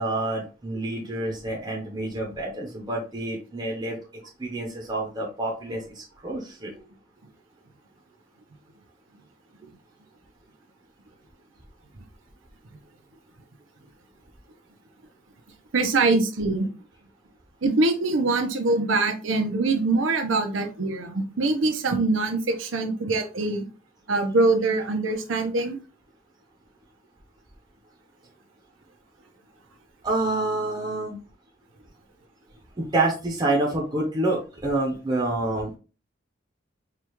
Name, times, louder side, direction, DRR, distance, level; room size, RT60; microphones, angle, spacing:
voice 1, 0.0-4.0 4.4-6.8 30.0-31.2 32.8-35.7, right 2 dB, 25° right, -2 dB, 0.7 m, -28 dB
voice 2, 15.7-16.7 17.6-23.7 24.1-25.8, right 3 dB, 85° right, 5 dB, 0.8 m, -23 dB
4.8 x 2.4 x 3.0 m, 0.35 s
head